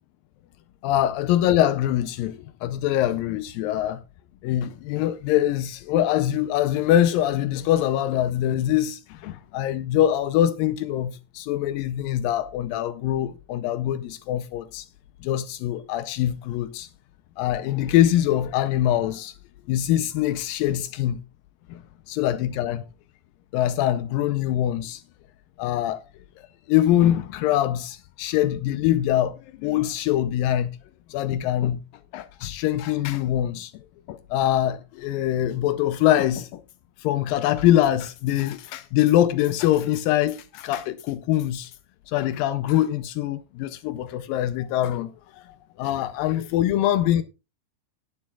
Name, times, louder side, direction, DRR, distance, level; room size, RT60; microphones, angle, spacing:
voice 1, 0.8-4.0 4.4-14.9 15.2-16.9 17.4-19.3 19.7-21.2 21.7-22.8 23.5-25.0 25.6-26.0 26.7-30.7 31.1-31.8 32.1-33.8 34.1-36.6 37.0-41.7 42.1-47.2, left 12 dB, 85° left, 2.3 m, -23 dB
18.5 x 7.5 x 2.3 m
omnidirectional pair, 4.0 m